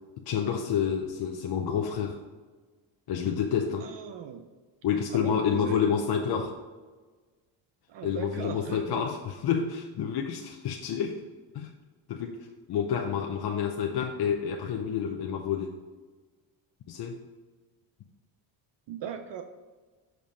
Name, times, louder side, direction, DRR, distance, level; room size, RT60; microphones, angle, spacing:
voice 1, 0.3-2.2 3.1-3.9 4.8-6.6 8.0-11.2 11.5-11.7 12.1-12.4 12.7-15.8 16.9-17.2, left 7 dB, 50° left, 2 dB, 0.8 m, -29 dB
voice 2, 3.8-4.4 5.2-6.0 7.9-9.0 18.9-19.4, right 8 dB, 60° right, 6 dB, 0.7 m, -38 dB
7.2 x 4.7 x 5.5 m, 1.3 s
cardioid pair, 110°, 48 cm